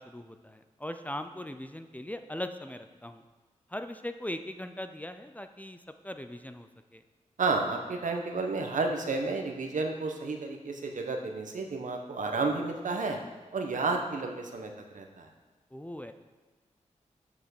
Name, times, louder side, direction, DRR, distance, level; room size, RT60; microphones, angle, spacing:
voice 1, 0.0-3.2 3.7-5.8 6.0-7.0 15.7-16.1, left 1 dB, 10° left, 8 dB, 0.6 m, -40 dB
voice 2, 7.4-13.2 13.5-15.3, right 3 dB, 80° right, 3 dB, 1.1 m, -31 dB
7.3 x 5.7 x 6.4 m, 1.3 s
cardioid pair, 60°, 13 cm